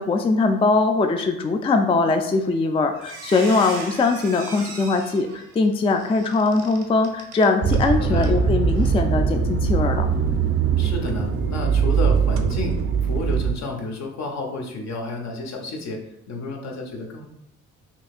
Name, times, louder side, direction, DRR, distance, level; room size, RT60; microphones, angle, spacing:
voice 1, 0.0-10.1, left 3 dB, 20° left, 5 dB, 0.3 m, -21 dB
Squeak, 2.4-2.6 2.9-7.9 8.2-8.4 8.8-8.9, right 4 dB, 85° right, 0.9 m, -38 dB
sound 1, 7.6-13.5, right 6 dB, 45° right, 0.5 m, -21 dB
voice 2, 7.9-8.3 10.8-16.0 16.3-17.3, left 3 dB, 65° left, 2 dB, 0.9 m, -31 dB
5.8 x 2.7 x 2.4 m, 0.81 s
cardioid pair, 90°, 30 cm